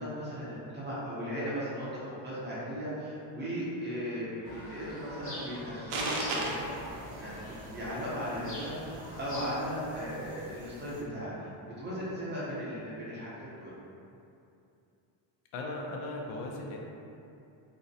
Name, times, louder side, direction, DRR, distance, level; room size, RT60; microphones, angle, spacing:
voice 1, 0.0-7.4 7.7-11.5 11.8-13.8, equal, 20° right, -9 dB, 0.6 m, -37 dB
sound 1, 4.4-9.4, left 1 dB, 30° left, 0.6 m, -44 dB
sound 2, 5.9-11.0, right 2 dB, 85° right, 0.6 m, -40 dB
voice 2, 15.5-16.8, left 2 dB, 80° left, 0 dB, 0.5 m, -37 dB
2.5 x 2.0 x 2.7 m, 2.7 s
cardioid pair, 130°, 49 cm